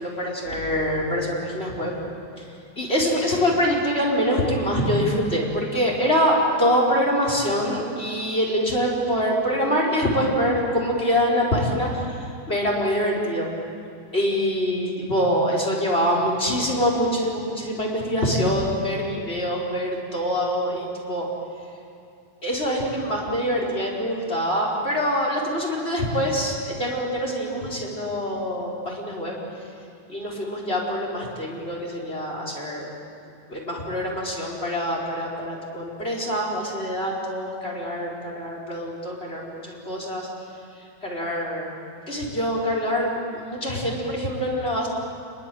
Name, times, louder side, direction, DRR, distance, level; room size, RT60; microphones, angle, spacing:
voice 1, 0.0-1.9 2.4-2.5 2.8-13.5 14.1-21.3 22.4-29.4 30.1-32.9 33.5-40.3 41.0-41.7 42.1-44.9, equal, 15° left, -1 dB, 3.9 m, -25 dB
29.0 x 21.0 x 9.2 m, 2.6 s
omnidirectional pair, 5.8 m